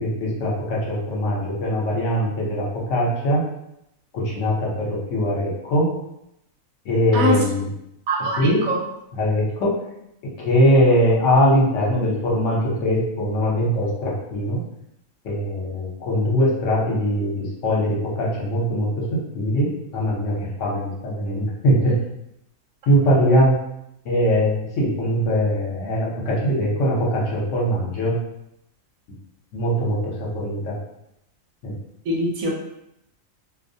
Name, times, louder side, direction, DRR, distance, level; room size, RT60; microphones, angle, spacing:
voice 1, 0.0-3.4 4.1-5.9 6.8-7.7 8.4-8.7 9.1-9.8 10.4-14.6 15.2-22.0 22.9-23.6 24.0-28.2 29.5-30.7 31.6-31.8, equal, 65° left, -4 dB, 1.0 m, -21 dB
voice 2, 8.1-8.8 32.1-32.6, equal, 80° right, -1 dB, 1.0 m, -22 dB
2.5 x 2.0 x 2.6 m, 0.83 s
omnidirectional pair, 1.4 m